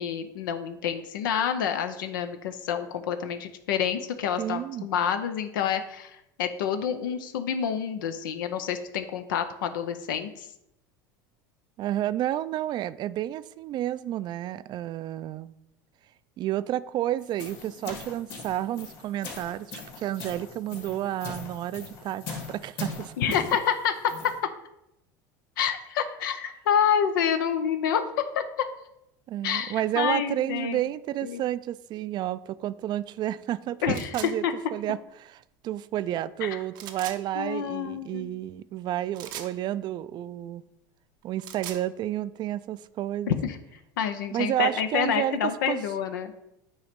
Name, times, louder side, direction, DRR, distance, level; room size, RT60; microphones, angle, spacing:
voice 1, 0.0-10.5 23.2-24.1 25.6-28.7 29.4-30.9 31.2-31.4 33.8-34.5 36.4-36.6 37.3-38.4 43.3-43.6 44.0-46.3, left 8 dB, 90° left, 0.6 m, -28 dB
voice 2, 4.4-4.9 11.8-15.5 16.4-23.1 29.3-34.4 34.7-40.6 41.2-43.4 44.3-45.4 45.7-45.8, right 12 dB, 45° right, 0.4 m, -31 dB
sound 1, 17.2-24.4, left 4 dB, 55° left, 2.3 m, -41 dB
sound 2, 33.9-34.3 36.7-37.2 39.1-39.5 41.2-41.8, right 10 dB, 80° right, 0.8 m, -39 dB
8.9 x 3.1 x 5.1 m
supercardioid pair, 105°, 10 cm